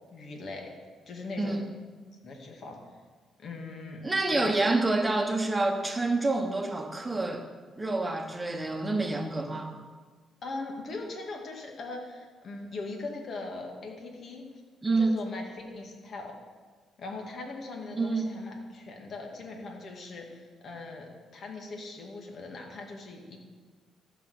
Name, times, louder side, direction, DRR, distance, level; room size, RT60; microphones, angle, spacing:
voice 1, 0.1-0.7 1.1-1.6 2.2-3.0 3.4-4.0 4.3-4.5 10.4-14.5 15.0-16.3 17.0-23.4, left 3 dB, 55° left, 1 dB, 2.0 m, -40 dB
voice 2, 4.0-7.5 7.8-9.7 14.8-15.2 17.9-18.3, right 2 dB, 20° right, 5 dB, 1.2 m, -27 dB
14.0 x 5.0 x 6.5 m, 1.4 s
cardioid pair, 90°, 0 cm